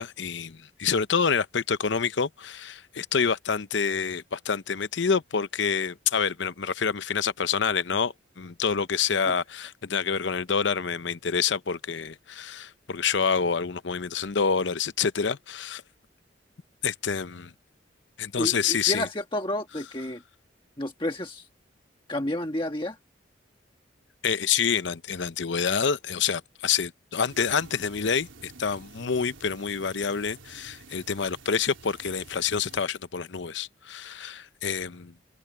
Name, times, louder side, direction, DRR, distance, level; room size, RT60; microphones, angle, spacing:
voice 1, 0.0-15.8 16.8-17.5 18.2-19.0 24.2-35.1, left 6 dB, 70° left, 0.7 m, -27 dB
voice 2, 18.4-20.2 20.8-21.5 22.1-23.0, left 1 dB, 25° left, 1.4 m, -30 dB
sound 1, 27.3-32.8, right 3 dB, 90° right, 3.9 m, -50 dB
head